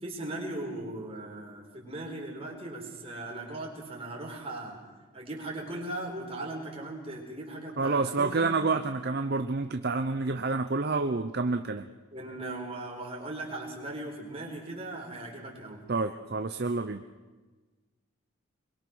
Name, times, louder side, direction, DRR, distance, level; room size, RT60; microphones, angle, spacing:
voice 1, 0.0-4.9 5.1-8.5 12.1-15.9, right 2 dB, 25° right, 0 dB, 4.3 m, -38 dB
voice 2, 7.8-11.9 15.9-17.0, right 3 dB, 45° right, 8 dB, 0.7 m, -28 dB
24.5 x 22.0 x 6.2 m, 1.3 s
head